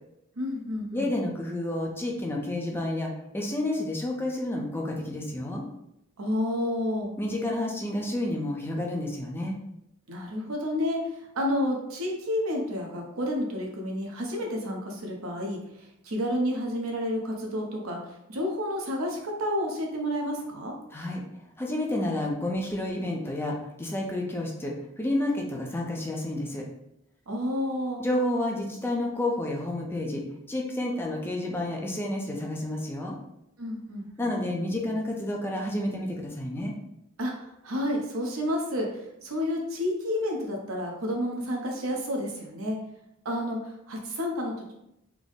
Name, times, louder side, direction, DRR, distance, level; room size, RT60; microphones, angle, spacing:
voice 1, 0.4-1.1 6.2-7.1 10.1-18.0 18.3-20.7 27.3-28.0 33.6-34.3 37.2-42.8 43.2-44.7, left 1 dB, 80° right, 0 dB, 0.8 m, -30 dB
voice 2, 0.9-5.6 7.2-9.6 20.9-21.2 21.6-26.6 28.0-30.2 30.5-33.2 34.2-36.7, left 1 dB, 10° left, 0 dB, 0.4 m, -30 dB
3.4 x 2.0 x 3.9 m, 0.82 s
head